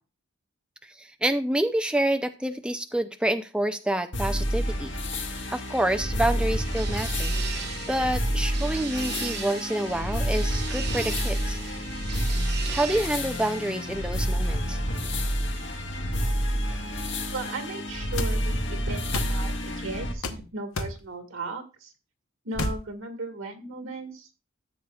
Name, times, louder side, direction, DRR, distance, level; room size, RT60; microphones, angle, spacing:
voice 1, 0.8-11.6 12.7-14.8, right 1 dB, 5° right, 8 dB, 0.5 m, -28 dB
sound 1, 4.1-20.1, equal, 60° left, 1.7 m, -29 dB
sound 2, 5.5-14.6, right 7 dB, 50° right, 1.0 m, -39 dB
voice 2, 17.3-21.9 22.4-24.3, right 2 dB, 85° right, 5 dB, 2.0 m, -36 dB
sound 3, 18.2-18.3 19.1-19.4 20.2-20.4 20.8-21.0 22.5-22.8, left 2 dB, 85° left, 1.1 m, -29 dB
13.5 x 7.4 x 2.4 m, 0.30 s
head